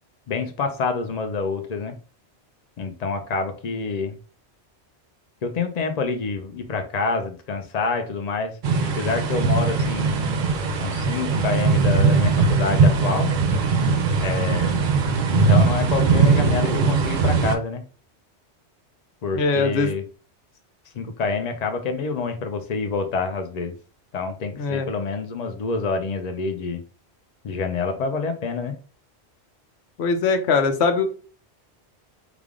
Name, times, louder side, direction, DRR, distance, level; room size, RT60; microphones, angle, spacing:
voice 1, 0.3-2.0 2.8-4.2 5.4-8.5 9.0-10.2 10.8-13.3 14.2-14.8 15.3-17.8 19.2-20.0 20.9-23.7 24.1-26.8 27.4-28.7, left 4 dB, 50° left, 7 dB, 0.6 m, -27 dB
sound 1, 8.6-17.6, right 4 dB, 55° right, 0.6 m, -20 dB
voice 2, 19.3-19.9 24.5-24.9 30.0-31.0, left 4 dB, 75° left, 7 dB, 0.9 m, -21 dB
3.4 x 2.4 x 3.6 m, 0.38 s
omnidirectional pair, 1.1 m